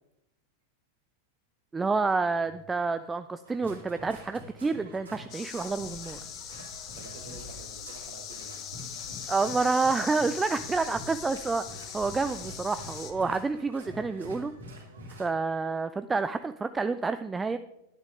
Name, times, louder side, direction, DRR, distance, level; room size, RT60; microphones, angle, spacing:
voice 1, 1.7-6.2 9.3-14.5 15.2-17.6, right 4 dB, 15° right, 11 dB, 0.4 m, -29 dB
sound 1, 3.4-15.3, right 1 dB, 75° right, 2.8 m, -46 dB
sound 2, 5.3-13.1, left 9 dB, 35° left, 1.1 m, -41 dB
voice 2, 7.0-8.9, right 4 dB, 50° right, 5 dB, 1.8 m, -50 dB
11.5 x 10.5 x 3.6 m, 0.88 s
figure-of-eight pair, 90°, 0 cm